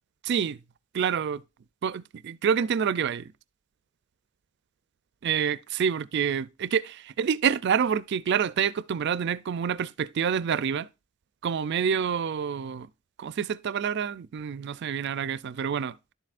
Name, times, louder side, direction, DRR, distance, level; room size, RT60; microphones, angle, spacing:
voice 1, 0.2-0.6 0.9-1.4 1.8-3.3 5.2-10.9 11.4-12.9 13.2-16.0, right 7 dB, 55° right, 0.4 m, -27 dB
11.0 x 7.6 x 2.5 m
head